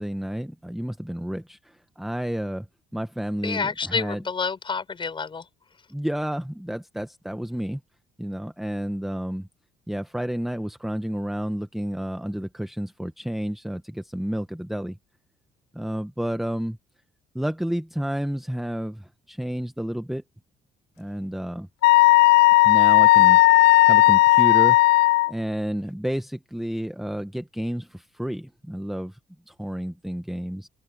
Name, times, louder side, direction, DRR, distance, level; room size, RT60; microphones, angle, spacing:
voice 1, 0.0-2.7 2.9-4.2 5.9-7.8 8.2-9.5 9.9-15.0 15.7-16.8 17.3-20.2 21.0-21.7 22.6-23.4 23.9-24.8 25.3-29.2 29.5-30.7, equal, ahead, 1.0 m, -30 dB
voice 2, 3.4-5.4, left 5 dB, 30° left, 6.6 m, -28 dB
Wind instrument woodwind instrument, 21.8-25.3, left 18 dB, 80° left, 0.4 m, -15 dB
open air
cardioid pair, 110°, 17 cm